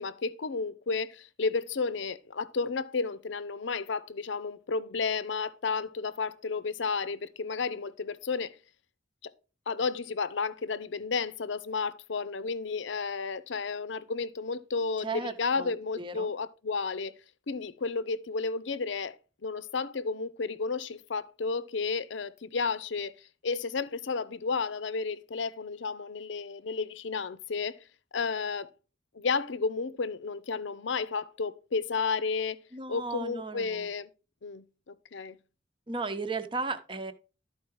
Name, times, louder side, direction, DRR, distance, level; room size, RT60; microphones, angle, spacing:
voice 1, 0.0-8.6 9.2-9.3 9.7-17.1 17.5-27.8 28.1-28.7 29.1-32.6 32.9-34.1 34.4-35.4, left 4 dB, 80° left, 0.6 m, -32 dB
voice 2, 15.0-16.3 32.7-33.9 35.9-37.1, right 3 dB, 25° right, 0.8 m, -35 dB
12.5 x 4.7 x 4.6 m
head